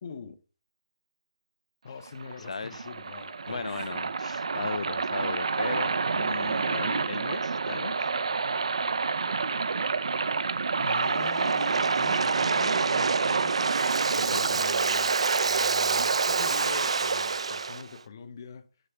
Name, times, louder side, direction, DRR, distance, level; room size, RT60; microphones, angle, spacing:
voice 1, 0.0-0.4 1.8-3.8 4.6-4.9 10.8-18.7, left 6 dB, 30° left, 0.7 m, -44 dB
Waves surf, 2.0-17.8, right 4 dB, 60° right, 0.5 m, -27 dB
voice 2, 2.5-2.9 3.5-8.0 14.2-14.7, left 4 dB, 75° left, 0.4 m, -36 dB
6.7 x 4.4 x 5.8 m
hypercardioid pair, 170°, 3 cm